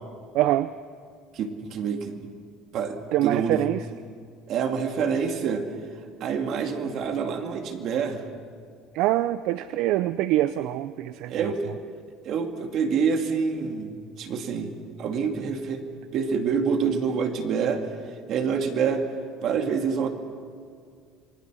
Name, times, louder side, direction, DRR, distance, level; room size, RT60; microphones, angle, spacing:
voice 1, 0.3-0.7 3.1-3.8 8.9-11.5, right 14 dB, 65° right, 13 dB, 0.6 m, -24 dB
voice 2, 1.3-2.3 2.7-3.6 4.5-5.6 6.2-8.2 11.3-11.7 12.2-14.7 15.0-15.8 16.1-17.8 18.3-19.0 19.4-20.1, right 6 dB, 50° right, 4 dB, 2.3 m, -27 dB
27.5 x 22.0 x 6.3 m, 2.2 s
cardioid pair, 155°, 0 cm